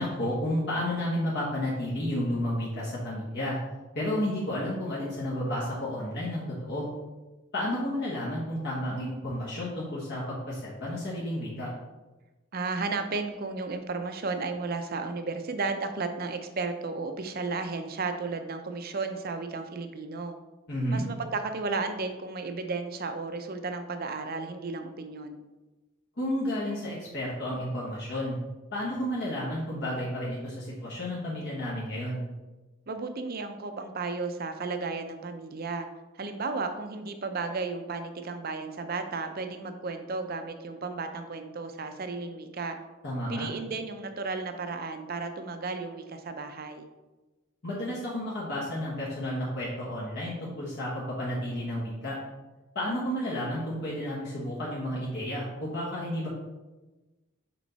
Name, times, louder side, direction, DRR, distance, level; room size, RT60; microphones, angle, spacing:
voice 1, 0.0-3.6 3.9-6.9 7.5-11.7 20.7-21.0 26.2-28.4 28.7-32.2 43.0-43.5 47.6-52.2 52.7-56.3, left 1 dB, 55° left, -6 dB, 1.3 m, -31 dB
voice 2, 12.5-20.3 20.9-25.4 32.9-35.9 36.1-42.8 43.3-46.9, right 3 dB, 45° right, 7 dB, 0.6 m, -34 dB
6.1 x 4.4 x 4.1 m, 1.1 s
head